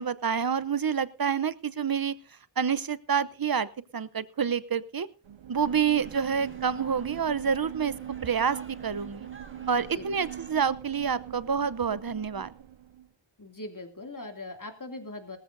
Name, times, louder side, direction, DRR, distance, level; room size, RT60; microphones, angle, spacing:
voice 1, 0.0-2.1 2.6-5.1 5.5-8.0 8.2-9.3 9.7-12.5, right 7 dB, 50° right, 17 dB, 0.8 m, -28 dB
sound 1, 5.2-13.1, right 11 dB, 80° right, 0.6 m, -42 dB
sound 2, 5.5-10.5, right 2 dB, 25° right, 1.9 m, -50 dB
voice 2, 9.8-10.2 13.4-15.4, left 2 dB, 45° left, 5 dB, 2.7 m, -41 dB
18.5 x 14.0 x 2.7 m, 0.36 s
wide cardioid pair, 40°, 45 cm